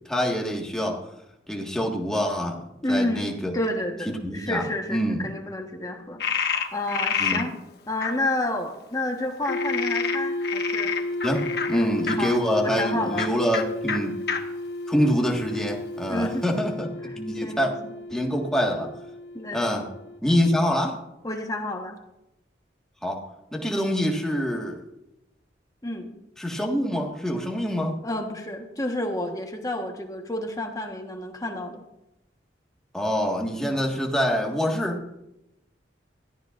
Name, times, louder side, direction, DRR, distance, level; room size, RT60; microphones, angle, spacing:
voice 1, 0.1-1.0 1.5-2.6 2.9-3.5 4.0-5.2 7.2-7.4 11.2-14.2 14.9-16.9 17.2-17.7 18.1-18.9 19.5-19.9 20.2-21.0 23.0-23.2 23.5-24.8 26.4-28.0 32.9-35.0, equal, 5° left, -1 dB, 1.7 m, -25 dB
voice 2, 2.8-7.6 7.9-11.0 11.7-13.3 16.1-16.7 17.0-17.9 19.3-19.7 21.2-22.0 25.8-26.1 28.0-31.8 33.6-33.9, left 1 dB, 20° left, 3 dB, 1.3 m, -30 dB
Frog, 6.2-7.4 8.0-8.1 9.4-12.2 13.1-13.3 13.5-13.6 13.9-14.0 14.3-14.4 15.0-15.7, left 6 dB, 60° left, 1.3 m, -28 dB
sound 1, 9.5-20.2, left 1 dB, 90° left, 0.6 m, -33 dB
21.0 x 14.5 x 2.6 m, 0.90 s
head